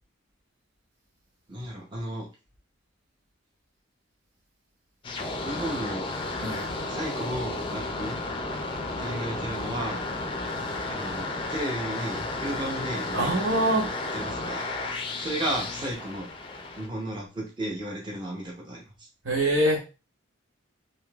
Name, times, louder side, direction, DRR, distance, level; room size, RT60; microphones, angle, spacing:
voice 1, 1.5-2.3 5.5-6.1 6.9-8.2 9.0-10.0 10.9-13.4 14.1-14.6 15.2-16.3 16.8-19.1, right 1 dB, 25° right, -2 dB, 0.7 m, -34 dB
sound 1, 5.0-16.9, left 2 dB, 25° left, 0.4 m, -33 dB
voice 2, 13.1-13.9 19.2-19.8, right 1 dB, 80° right, -1 dB, 1.2 m, -24 dB
3.6 x 2.7 x 2.3 m, 0.31 s
head